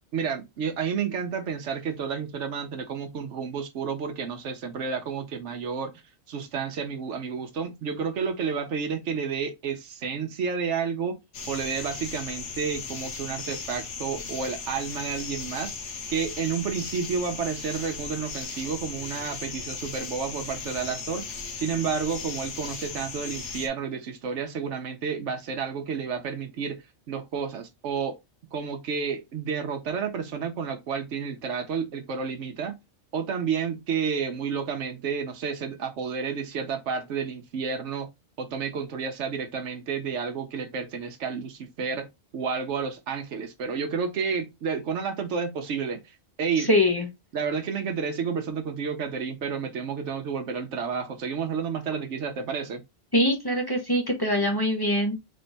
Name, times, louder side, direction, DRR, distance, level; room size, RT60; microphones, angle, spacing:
voice 1, 0.1-5.9 6.3-11.2 11.5-15.7 16.1-21.2 21.5-26.8 27.1-28.2 28.5-32.7 33.1-38.1 38.4-42.1 42.3-46.0 46.4-46.7 47.3-52.8, right 6 dB, 90° right, 1.1 m, -30 dB
sound 1, 11.3-23.7, left 5 dB, 80° left, 1.3 m, -37 dB
voice 2, 46.6-47.1 53.1-55.2, left 1 dB, 20° left, 1.0 m, -23 dB
3.6 x 3.3 x 4.0 m
omnidirectional pair, 1.2 m